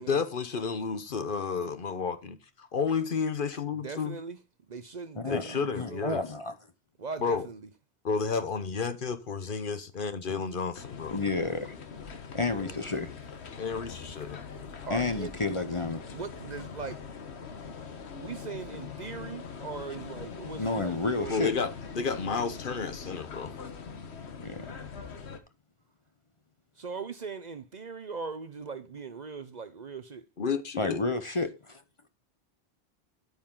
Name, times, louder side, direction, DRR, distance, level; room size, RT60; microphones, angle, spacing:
voice 1, 0.0-4.2 5.3-6.2 7.2-7.5 8.0-11.2 13.6-14.4 21.3-23.5 30.4-31.0, left 5 dB, 55° left, 1.0 m, -31 dB
voice 2, 3.7-4.4 4.7-6.1 7.0-7.7 12.5-12.8 14.9-15.4 16.1-17.0 18.2-21.5 26.8-30.2, right 5 dB, 45° right, 0.8 m, -40 dB
voice 3, 5.2-6.5 11.1-11.7 12.3-13.1 14.9-16.0 20.6-21.5 24.4-24.8 30.8-31.8, left 3 dB, 30° left, 0.8 m, -31 dB
sound 1, 10.7-25.4, left 6 dB, 75° left, 1.4 m, -42 dB
9.7 x 8.7 x 3.8 m
omnidirectional pair, 1.1 m